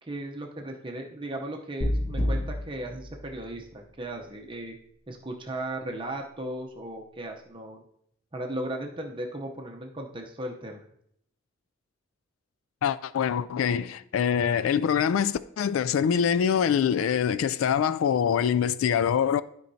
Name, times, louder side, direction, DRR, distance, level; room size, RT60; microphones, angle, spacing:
voice 1, 0.0-4.8 5.1-7.8 8.3-10.9, right 1 dB, 25° right, 0.7 m, -36 dB
sound 1, 1.8-3.9, left 1 dB, 60° left, 2.4 m, -30 dB
voice 2, 12.8-19.4, left 8 dB, 85° left, 0.3 m, -24 dB
13.0 x 4.5 x 2.7 m
head